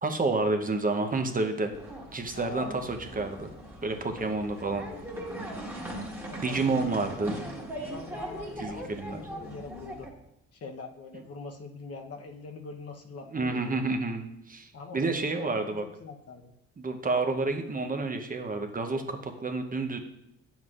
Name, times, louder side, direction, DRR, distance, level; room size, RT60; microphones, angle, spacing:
voice 1, 0.0-1.7 2.1-3.5 3.8-4.8 6.4-7.3 8.6-9.2 13.3-15.8 16.8-20.0, right 3 dB, 30° right, 5 dB, 0.8 m, -29 dB
sound 1, 1.7-10.1, right 1 dB, 10° right, 1.6 m, -40 dB
voice 2, 2.3-2.7 6.3-7.0 7.8-10.1 10.5-13.7 14.7-16.5, left 4 dB, 50° left, 3 dB, 0.9 m, -43 dB
9.2 x 7.2 x 2.5 m, 0.82 s
cardioid pair, 90°, 30 cm